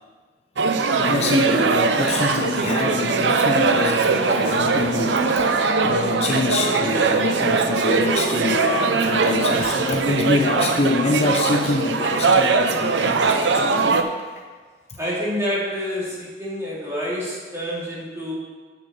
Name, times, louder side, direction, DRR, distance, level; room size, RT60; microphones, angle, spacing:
sound 1, 0.6-14.0, right 4 dB, 90° right, 0.6 m, -21 dB
voice 1, 1.0-14.4, left 3 dB, 35° left, 3 dB, 0.6 m, -25 dB
voice 2, 15.0-18.3, equal, 15° right, -7 dB, 2.8 m, -28 dB
8.4 x 6.7 x 5.5 m, 1.4 s
head